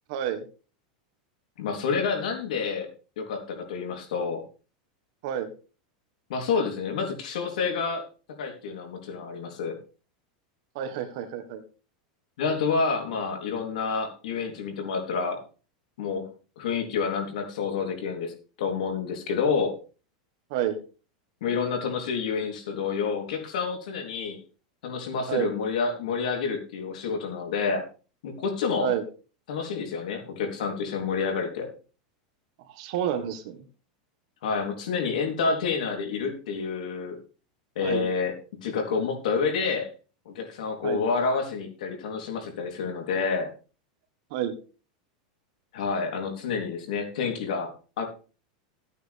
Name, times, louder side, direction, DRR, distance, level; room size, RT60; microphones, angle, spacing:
voice 1, 0.1-0.4 5.2-5.5 10.7-11.6 20.5-20.8 25.3-25.5 28.8-29.0 32.8-33.6 37.8-38.0 40.8-41.0 44.3-44.5, right 10 dB, 50° right, 8 dB, 1.6 m, -29 dB
voice 2, 1.6-2.9 3.2-4.4 6.3-8.0 8.4-9.8 12.4-15.4 16.0-16.2 16.6-19.7 21.4-24.4 24.8-27.8 28.2-28.9 29.5-31.7 34.4-37.2 37.7-38.3 38.6-39.9 40.2-43.5 45.7-48.0, left 5 dB, 75° left, 3 dB, 3.3 m, -28 dB
14.0 x 9.1 x 3.5 m, 0.36 s
supercardioid pair, 165°, 4 cm